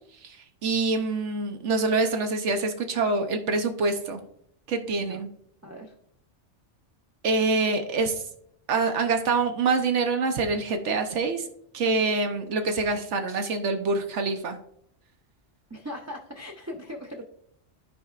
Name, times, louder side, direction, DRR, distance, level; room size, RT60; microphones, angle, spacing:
voice 1, 0.6-4.2 4.7-5.3 7.2-8.2 8.7-11.5 11.7-14.6, right 3 dB, 85° right, 6 dB, 1.1 m, -25 dB
voice 2, 5.6-5.9 15.7-17.2, left 1 dB, 20° right, 0 dB, 0.5 m, -39 dB
13.0 x 4.6 x 2.4 m, 0.70 s
omnidirectional pair, 1.2 m